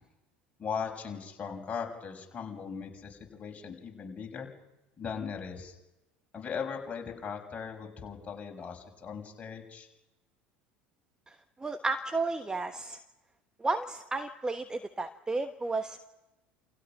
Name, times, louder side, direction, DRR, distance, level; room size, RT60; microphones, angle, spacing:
voice 1, 0.6-4.5 5.0-5.7 6.3-9.9, left 6 dB, 25° left, 1 dB, 6.1 m, -38 dB
voice 2, 11.6-13.0 13.6-16.1, right 3 dB, 15° right, 8 dB, 1.3 m, -32 dB
28.5 x 28.5 x 6.2 m, 1.0 s
figure-of-eight pair, 70°, 6 cm